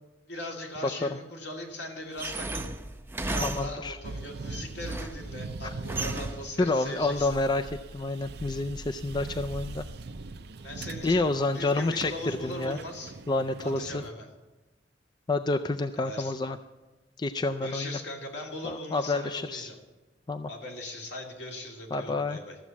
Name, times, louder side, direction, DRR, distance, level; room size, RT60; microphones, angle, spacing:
voice 1, 0.3-2.7 3.2-7.3 10.6-11.3 11.5-13.1 13.6-14.3 16.0-16.4 17.6-19.8 20.5-22.6, left 1 dB, 70° left, 0 dB, 2.5 m, -39 dB
sound 1, 2.2-4.0 4.5-5.3 5.9-6.5, right 2 dB, 15° right, 0.6 m, -34 dB
voice 2, 3.4-4.0 5.6-5.7 6.6-9.8 11.0-12.8 13.3-14.0 15.3-16.6 17.2-18.0 18.6-19.7 20.3-20.5 21.9-22.4, left 2 dB, 25° left, 8 dB, 0.4 m, -29 dB
sound 2, 4.0-14.1, right 3 dB, 65° right, 0.6 m, -41 dB
14.0 x 7.4 x 7.0 m, 1.1 s
head